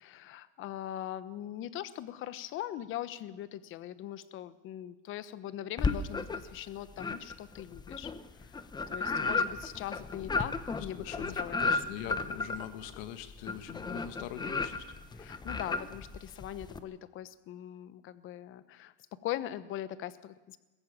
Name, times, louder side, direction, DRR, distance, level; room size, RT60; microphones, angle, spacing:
voice 1, 0.0-8.1 8.4-11.6 15.2-18.9 19.2-20.6, left 12 dB, 40° left, 14 dB, 1.1 m, -41 dB
sound 1, 5.8-6.6 7.0-16.8, left 4 dB, 15° left, 1.0 m, -34 dB
voice 2, 10.8-14.9, left 11 dB, 65° left, 9 dB, 1.8 m, -43 dB
20.5 x 15.0 x 8.8 m, 1.2 s
supercardioid pair, 140°, 30 cm